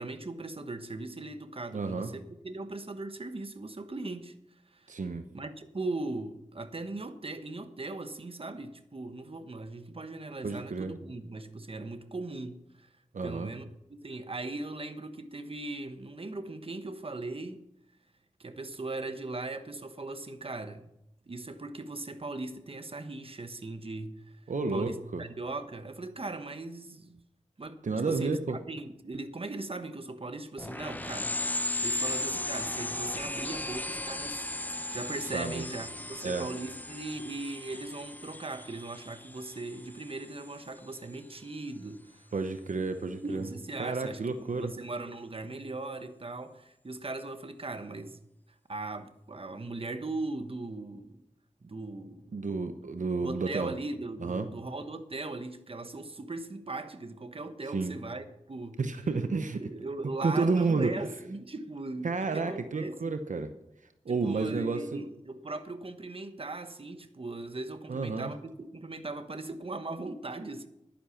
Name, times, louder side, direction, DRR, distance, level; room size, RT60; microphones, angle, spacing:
voice 1, 0.0-4.4 4.7-5.0 5.3-12.9 13.2-17.6 18.4-20.9 21.3-24.4 24.7-27.2 27.6-28.4 28.7-31.4 31.6-42.3 43.2-48.2 48.7-51.2 51.6-52.4 53.2-58.8 59.6-63.1 64.1-68.4 68.7-70.7, right 2 dB, 45° right, 1.1 m, -39 dB
voice 2, 1.7-2.1 4.9-5.2 10.4-10.9 13.1-13.5 24.5-25.2 27.8-28.6 35.3-35.6 36.2-36.5 42.3-43.5 43.8-44.7 52.3-53.7 54.2-54.5 57.7-57.9 58.8-59.6 60.2-60.9 62.0-63.5 64.0-65.0 67.9-68.3, right 4 dB, 80° right, 0.9 m, -31 dB
sound 1, 30.6-40.7, left 2 dB, 15° left, 0.6 m, -36 dB
11.5 x 9.9 x 5.9 m
wide cardioid pair, 65°, 13 cm